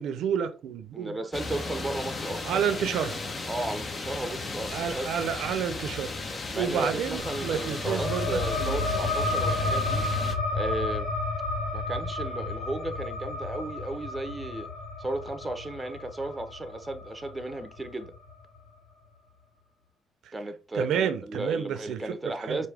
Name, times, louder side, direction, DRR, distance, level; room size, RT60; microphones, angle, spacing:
voice 1, 0.0-1.2 2.4-3.2 4.7-6.1 6.5-8.8 20.7-22.1 22.5-22.7, right 8 dB, 80° right, 0.6 m, -30 dB
voice 2, 0.9-2.4 2.7-2.8 3.5-5.2 6.5-10.1 10.5-11.1 11.7-14.7 15.0-18.1 20.3-22.7, right 2 dB, 15° right, 0.7 m, -34 dB
sound 1, 1.3-10.4, left 3 dB, 35° left, 0.9 m, -35 dB
sound 2, 7.2-18.3, left 2 dB, 80° left, 1.6 m, -31 dB
4.9 x 2.7 x 3.4 m
cardioid pair, 90°, 0 cm